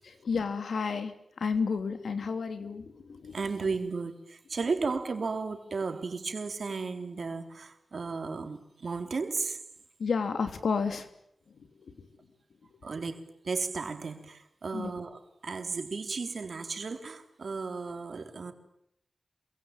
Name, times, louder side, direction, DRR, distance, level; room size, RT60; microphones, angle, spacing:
voice 1, 0.2-3.4 10.0-11.1 11.8-11.9 14.7-14.9, left 5 dB, 90° left, 9 dB, 2.9 m, -31 dB
voice 2, 3.3-9.6 12.8-18.5, right 4 dB, 60° right, 6 dB, 3.6 m, -34 dB
27.0 x 24.0 x 9.0 m, 0.75 s
wide cardioid pair, 90°, 0 cm